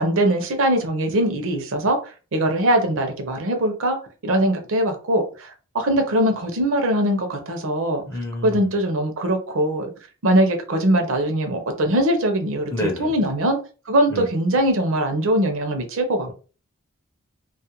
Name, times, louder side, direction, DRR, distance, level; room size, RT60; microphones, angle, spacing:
voice 1, 0.0-2.0 2.3-4.0 4.2-8.0 8.4-9.9 10.2-13.6 13.9-16.3, right 1 dB, 60° right, 0.6 m, -21 dB
voice 2, 8.1-8.7 12.7-13.3 14.1-14.3, left 1 dB, 15° left, 0.5 m, -29 dB
2.4 x 2.1 x 2.8 m
head